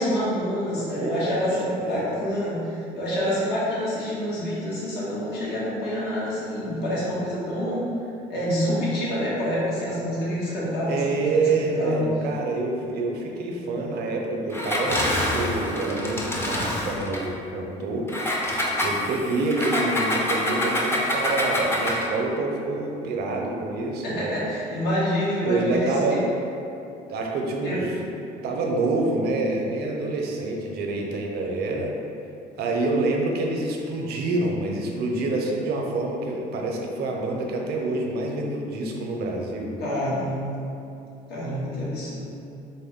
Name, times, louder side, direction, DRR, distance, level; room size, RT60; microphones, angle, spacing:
voice 1, 0.0-7.9 8.3-12.0 24.0-26.2 27.6-27.8 39.8-40.5 41.3-42.4, equal, 75° left, -7 dB, 1.2 m, -27 dB
voice 2, 1.0-2.2 10.9-18.1 18.8-24.4 25.4-26.2 27.1-27.9 28.4-31.9 32.6-39.7, right 2 dB, 70° right, 0 dB, 0.6 m, -27 dB
Engine, 14.5-17.3 18.1-22.1, left 1 dB, 15° left, 0.5 m, -26 dB
4.1 x 2.2 x 3.5 m, 2.7 s
cardioid pair, 110°, 17 cm